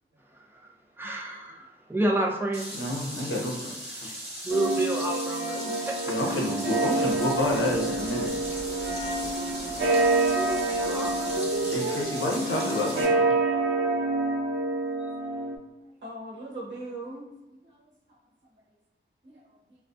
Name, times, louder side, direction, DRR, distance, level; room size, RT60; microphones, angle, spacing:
voice 1, 0.3-2.8 4.4-6.1 10.2-12.3, right 1 dB, 10° right, -2 dB, 0.4 m, -31 dB
sound 1, 2.5-13.0, equal, 30° right, 1.2 m, -38 dB
voice 2, 2.7-3.7 6.1-8.3 11.7-13.3, left 1 dB, 75° left, -1 dB, 0.6 m, -29 dB
sound 2, 4.5-15.6, right 2 dB, 75° right, 0.4 m, -27 dB
sound 3, 5.8-13.8, equal, 15° left, 0.7 m, -45 dB
voice 3, 16.0-17.9 19.2-19.6, right 2 dB, 60° right, -6 dB, 0.9 m, -40 dB
2.4 x 2.1 x 2.5 m, 0.98 s
wide cardioid pair, 80°, 21 cm